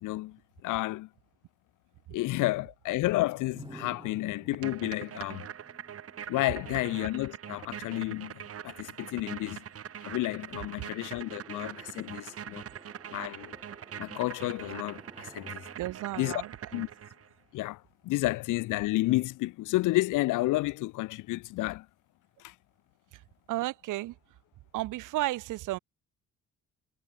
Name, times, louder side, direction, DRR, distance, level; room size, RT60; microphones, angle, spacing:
voice 1, 0.0-1.1 2.1-5.5 6.3-9.6 10.0-12.6 13.1-13.5 14.0-15.6 16.2-16.4 16.7-16.9 17.5-21.9 22.4-22.5, left 18 dB, 85° left, 0.6 m, -31 dB
sound 1, 3.5-17.3, right 2 dB, 15° right, 3.3 m, -55 dB
sound 2, 4.5-17.3, right 9 dB, 50° right, 1.4 m, -43 dB
voice 2, 15.8-16.5 23.1-23.2 23.5-24.2 24.7-25.8, right 17 dB, 85° right, 1.3 m, -33 dB
cardioid pair, 90°, 30 cm